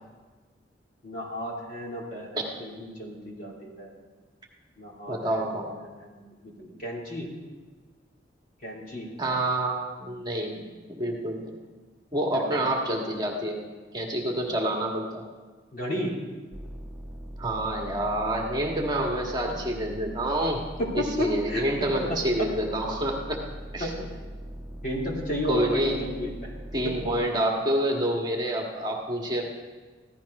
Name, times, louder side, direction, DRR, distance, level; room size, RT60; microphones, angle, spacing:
voice 1, 1.0-3.9 4.8-7.3 8.6-9.1 12.3-12.6 15.7-16.2 19.5-19.6 20.8-22.5 23.8-24.1 24.8-26.6 26.8-27.0, equal, 50° left, -3 dB, 3.1 m, -33 dB
voice 2, 5.1-5.7 9.2-11.6 12.1-13.6 13.9-15.2 17.4-20.6 20.9-23.4 23.7-23.9 25.5-26.0 26.7-29.5, right 1 dB, 25° right, 0 dB, 1.5 m, -28 dB
sound 1, 16.5-27.2, equal, 5° right, 1.1 m, -40 dB
15.5 x 12.5 x 5.3 m, 1.4 s
head